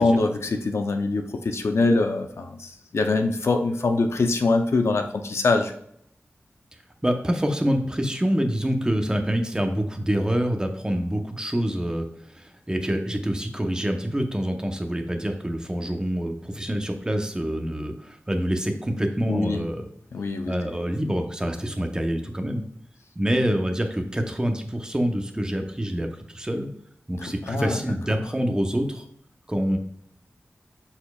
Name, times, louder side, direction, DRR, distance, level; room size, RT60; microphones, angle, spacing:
voice 1, 0.0-5.7 19.3-19.6 20.1-20.5 27.2-27.8, left 3 dB, 80° left, 5 dB, 0.7 m, -23 dB
voice 2, 7.0-19.9 20.5-22.6 23.1-26.7 27.1-29.0 29.5-29.8, equal, 15° right, 4 dB, 0.9 m, -26 dB
11.5 x 4.3 x 2.4 m, 0.70 s
wide cardioid pair, 90°, 5 cm